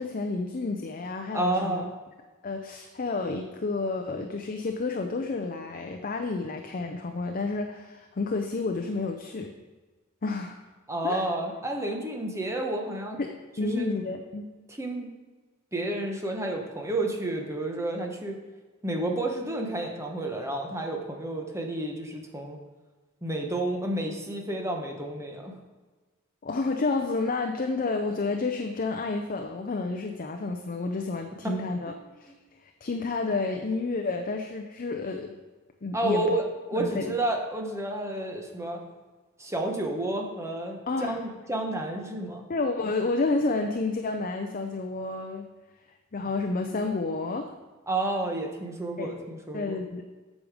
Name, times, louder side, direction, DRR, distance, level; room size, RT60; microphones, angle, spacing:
voice 1, 0.0-1.8 2.4-9.5 10.2-10.6 11.0-11.3 13.2-14.4 26.4-31.9 32.2-32.3 32.6-35.4 35.8-36.2 36.7-37.1 40.9-41.2 42.5-45.5 46.1-47.5 49.0-49.2 49.5-50.0, left 3 dB, 40° left, 4 dB, 0.5 m, -30 dB
voice 2, 1.3-1.9 10.9-13.2 13.6-13.9 14.7-15.1 15.7-18.4 18.8-22.6 23.2-25.5 31.4-31.5 35.9-38.8 39.4-42.4 47.9-49.8, right 1 dB, 15° right, 1 dB, 1.1 m, -30 dB
8.5 x 6.4 x 4.9 m, 1.3 s
head